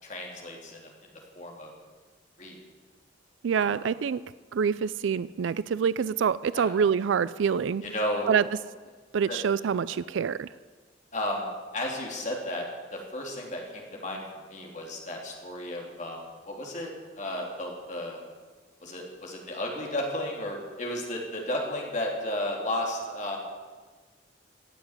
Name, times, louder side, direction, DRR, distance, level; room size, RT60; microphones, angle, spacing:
voice 1, 0.0-1.7 2.4-2.6 3.5-3.7 6.5-6.7 7.8-8.3 9.3-9.5 9.9-10.0 11.1-11.5 11.7-12.6 12.9-14.2 14.5-18.2 18.8-23.4, left 1 dB, 40° left, -1 dB, 3.2 m, -33 dB
voice 2, 3.4-4.2 4.5-7.8 8.3-8.4 9.1-10.5, right 7 dB, 75° right, 17 dB, 0.4 m, -26 dB
15.5 x 8.0 x 9.7 m, 1.4 s
head